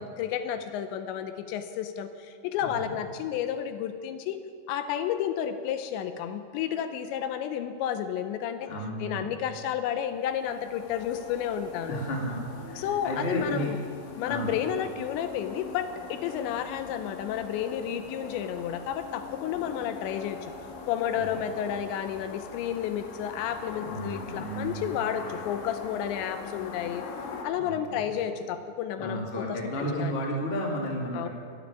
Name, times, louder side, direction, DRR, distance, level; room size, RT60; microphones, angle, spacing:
voice 1, 0.0-4.4 4.7-8.7 9.0-12.0 12.8-13.8 14.2-20.5 20.9-27.0 27.4-30.2 31.1-31.3, left 9 dB, 80° left, 9 dB, 2.9 m, -31 dB
voice 2, 2.6-2.9 8.7-9.3 11.9-13.7 14.2-14.5 21.1-21.3 23.8-24.9 27.5-28.1 28.9-31.3, equal, 25° left, -2 dB, 1.3 m, -33 dB
sound 1, 10.1-27.4, left 5 dB, 65° left, 2.5 m, -42 dB
13.5 x 9.4 x 9.8 m, 2.2 s
omnidirectional pair, 5.3 m